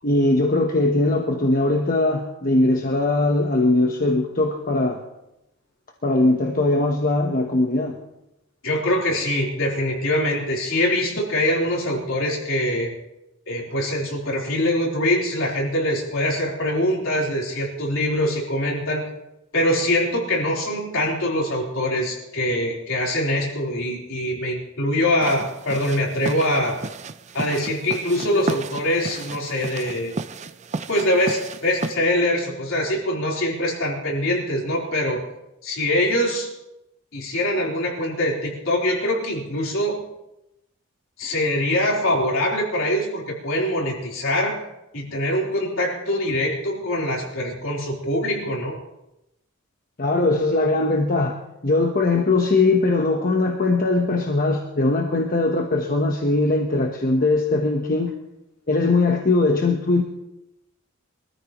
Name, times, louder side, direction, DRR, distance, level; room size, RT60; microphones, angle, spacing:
voice 1, 0.0-5.0 6.0-8.0 50.0-51.4 51.6-58.1 58.7-60.0, left 2 dB, 45° left, 2 dB, 1.1 m, -20 dB
voice 2, 8.6-12.9 13.5-19.1 19.5-26.8 27.3-30.1 30.9-35.2 35.6-36.5 37.1-40.0 41.2-44.6 44.9-48.8, left 1 dB, 75° left, -2 dB, 3.9 m, -23 dB
sound 1, 25.2-32.0, right 3 dB, 35° right, 0.6 m, -33 dB
23.5 x 13.5 x 3.1 m, 0.91 s
head